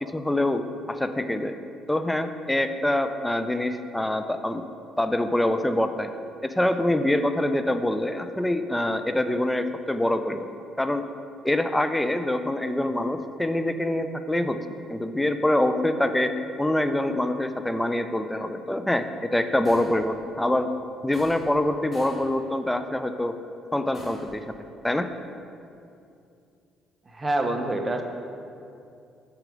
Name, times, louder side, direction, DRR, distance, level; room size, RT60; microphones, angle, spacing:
voice 1, 0.0-1.5 1.9-4.6 5.0-6.1 6.4-10.5 10.8-11.0 11.4-16.3 16.6-20.7 21.0-23.3 23.7-25.1, left 1 dB, 10° left, 9 dB, 0.5 m, -25 dB
sound 1, 19.6-20.1 21.1-21.6 21.9-22.3 23.9-24.4, left 2 dB, 35° left, 1.9 m, -45 dB
voice 2, 27.1-28.0, right 2 dB, 20° right, 4 dB, 0.9 m, -26 dB
6.6 x 4.9 x 6.4 m, 2.6 s
supercardioid pair, 75°, 0 cm